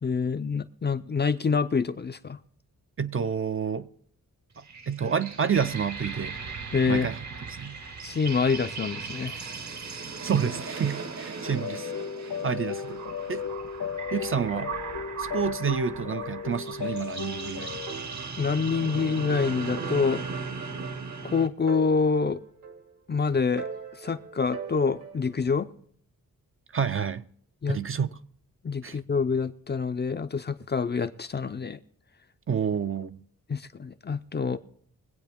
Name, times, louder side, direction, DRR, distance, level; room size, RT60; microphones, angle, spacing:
voice 1, 0.0-2.4 6.7-7.1 8.0-9.4 18.4-20.2 21.2-22.4 23.1-23.7 24.0-25.7 27.6-27.8 28.6-31.8 33.5-34.6, left 5 dB, 30° left, 0.5 m, -26 dB
voice 2, 3.0-3.9 4.6-6.4 6.9-7.2 7.5-7.8 10.2-11.9 12.4-13.0 13.3-13.5 14.1-14.7 15.2-17.8 26.7-27.2 27.7-28.2 28.8-29.0 32.5-33.2, right 7 dB, 40° right, 0.5 m, -29 dB
sound 1, 4.5-21.5, right 5 dB, 55° right, 1.0 m, -37 dB
sound 2, 11.4-17.9, left 7 dB, 75° left, 1.3 m, -35 dB
sound 3, 17.9-19.0 19.3-19.4 19.8-21.3 21.7-23.1 23.6-25.4, right 6 dB, 75° right, 2.0 m, -41 dB
23.5 x 8.3 x 3.6 m
wide cardioid pair, 125°, 34 cm